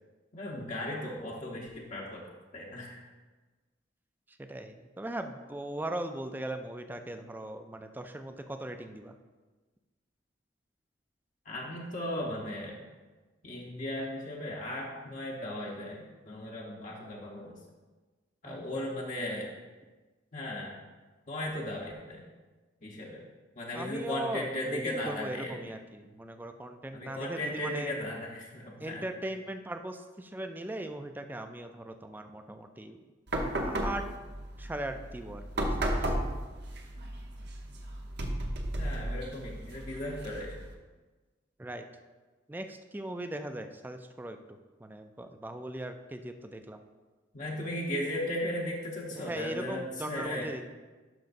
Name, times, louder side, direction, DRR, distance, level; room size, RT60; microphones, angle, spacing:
voice 1, 0.3-2.2 2.5-3.0 11.4-12.8 13.4-17.5 18.4-19.5 20.3-20.8 21.3-22.2 22.8-23.2 23.6-25.6 26.9-29.1 38.8-40.6 47.3-50.5, left 1 dB, 45° left, -3 dB, 1.0 m, -36 dB
voice 2, 4.5-9.1 18.4-18.9 23.7-27.9 28.8-33.0 33.6-34.0 34.6-36.2 41.6-41.8 42.5-44.4 44.8-46.8 49.2-50.7, right 1 dB, 10° right, 7 dB, 0.4 m, -39 dB
sound 1, 33.3-40.7, right 1 dB, 65° right, 0.9 m, -34 dB
12.0 x 5.2 x 2.6 m, 1.3 s
head